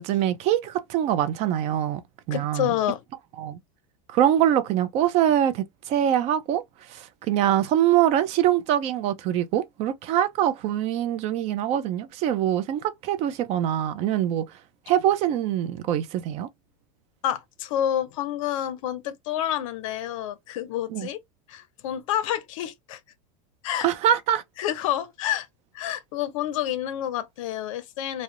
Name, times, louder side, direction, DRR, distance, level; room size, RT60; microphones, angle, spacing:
voice 1, 0.0-2.0 2.3-2.7 3.4-3.6 4.1-6.6 6.9-14.5 14.9-16.5 20.9-21.1 23.8-24.4, right 11 dB, 40° right, 0.4 m, -24 dB
voice 2, 2.3-3.0 17.2-21.2 21.5-23.0 23.6-23.9 24.6-25.5 25.7-28.2, left 11 dB, 75° left, 0.5 m, -28 dB
2.4 x 2.0 x 2.8 m
supercardioid pair, 135°, 17 cm